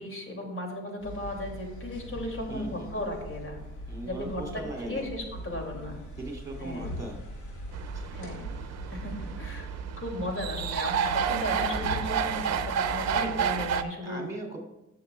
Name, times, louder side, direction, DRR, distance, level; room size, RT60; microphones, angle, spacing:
voice 1, 0.0-3.6 4.0-6.0 6.6-6.9 8.1-8.5 8.9-9.7 10.0-14.2, left 1 dB, 45° left, 1 dB, 2.8 m, -36 dB
sound 1, 1.0-13.6, equal, 80° left, 2.8 m, -41 dB
voice 2, 2.5-3.0 3.9-5.1 6.2-7.2 7.9-8.0 14.0-14.6, right 2 dB, 10° right, -1 dB, 3.0 m, -39 dB
sound 2, 7.7-13.8, right 7 dB, 60° right, 0.6 m, -30 dB
16.0 x 6.9 x 2.4 m, 0.95 s
cardioid pair, 90°, 30 cm